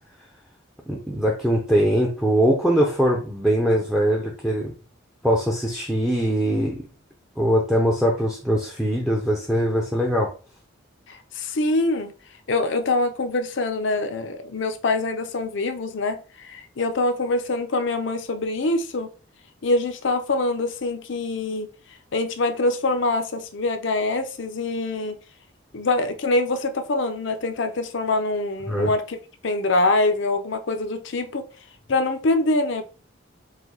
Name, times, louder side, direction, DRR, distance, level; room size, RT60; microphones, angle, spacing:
voice 1, 0.9-4.7 5.2-6.9 7.4-10.3 28.7-28.9, equal, ahead, 0.5 m, -22 dB
voice 2, 11.1-12.1 12.5-19.1 19.6-21.7 22.1-25.2 25.7-29.2 29.4-31.4 31.9-32.8, left 2 dB, 60° left, 0.5 m, -24 dB
4.9 x 2.2 x 3.9 m
head